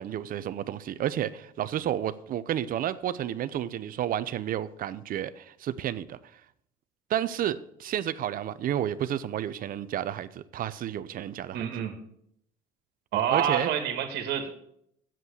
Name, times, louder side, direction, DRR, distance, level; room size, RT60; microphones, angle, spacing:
voice 1, 0.0-6.2 7.1-11.7 13.3-13.7, right 11 dB, 55° right, 0.7 m, -31 dB
voice 2, 11.5-12.0 13.1-14.6, right 9 dB, 70° right, 1.9 m, -28 dB
8.1 x 7.6 x 8.0 m
supercardioid pair, 85°, 18 cm